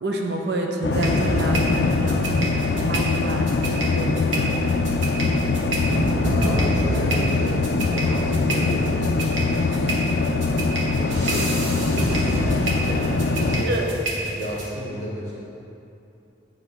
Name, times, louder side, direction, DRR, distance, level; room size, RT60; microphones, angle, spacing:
voice 1, 0.0-2.5 2.8-3.5 3.9-4.6 13.7-13.9, right 2 dB, 60° right, 1 dB, 0.5 m, -28 dB
sound 1, 0.8-13.6, left 3 dB, 60° left, 0.3 m, -23 dB
sound 2, 0.9-14.7, right 1 dB, 85° right, 1.1 m, -29 dB
voice 2, 5.1-5.5 6.3-7.7 7.9-10.5 10.9-13.1 13.3-13.8 14.3-15.4, equal, 35° left, -5 dB, 1.0 m, -32 dB
9.1 x 3.2 x 4.5 m, 2.8 s
head